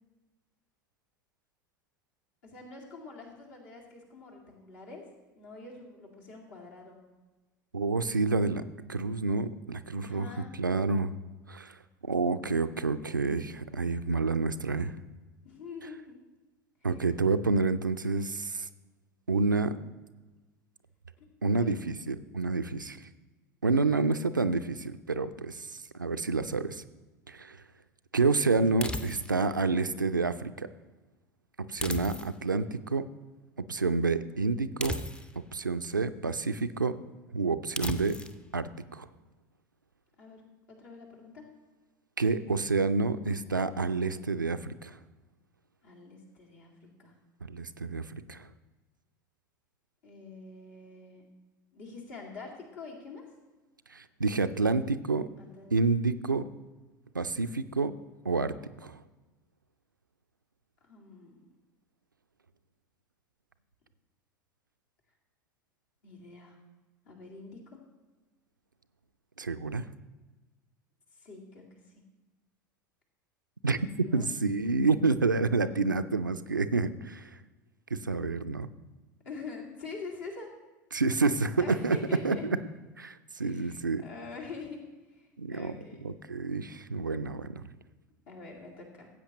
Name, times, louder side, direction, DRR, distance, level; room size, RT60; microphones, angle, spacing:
voice 1, 2.4-5.1 5.4-7.0 10.0-10.6 15.4-16.2 16.8-16.9 21.2-21.3 21.6-21.9 23.9-24.1 40.2-41.5 45.8-47.1 50.0-51.2 51.7-53.3 55.4-55.7 60.8-61.5 66.0-66.6 67.0-67.8 71.1-71.8 73.9-74.3 79.2-80.5 81.6-82.4 83.4-86.1 88.3-89.1, left 4 dB, 60° left, -1 dB, 2.3 m, -45 dB
voice 2, 7.7-8.6 8.9-10.3 10.6-11.2 11.5-11.8 12.0-15.0 16.8-18.7 19.3-19.7 21.4-23.0 23.6-26.8 27.3-27.6 28.1-30.7 31.7-33.0 33.6-35.0 35.5-36.9 37.3-38.2 38.5-39.1 42.2-45.0 47.4-48.5 53.9-55.3 55.7-56.4 57.1-57.9 58.2-58.5 58.8-59.0 69.4-69.9 73.6-73.8 74.1-77.3 77.9-78.7 80.9-82.0 82.2-82.6 83.0-84.0 85.4-85.7 86.0-87.6, right 3 dB, 90° right, 11 dB, 0.4 m, -29 dB
sound 1, 28.8-29.5 31.8-32.6 34.8-35.5 37.8-38.4, left 1 dB, 10° left, 0.5 m, -36 dB
15.0 x 8.2 x 3.0 m, 1.2 s
figure-of-eight pair, 75°, 10 cm